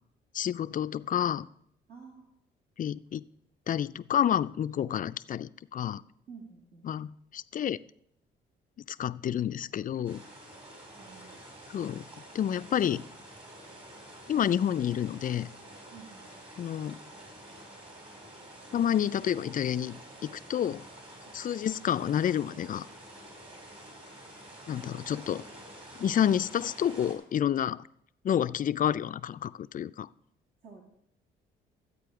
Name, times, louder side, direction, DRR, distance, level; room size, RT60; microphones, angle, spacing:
voice 1, 0.3-1.5 2.8-3.2 3.7-6.0 6.8-7.8 8.9-10.2 11.7-12.0 12.3-13.1 14.3-15.5 16.6-17.0 18.7-20.8 21.3-22.9 24.7-25.4 26.0-27.8 28.2-30.1, left 9 dB, 45° left, 15 dB, 0.4 m, -29 dB
voice 2, 1.9-2.3 6.3-6.8 11.0-11.4 15.9-16.2 30.6-30.8, right 5 dB, 50° right, -2 dB, 2.3 m, -50 dB
sound 1, 10.0-27.1, right 1 dB, 30° right, 4.8 m, -49 dB
13.0 x 8.4 x 4.8 m, 0.72 s
cardioid pair, 90°, 20 cm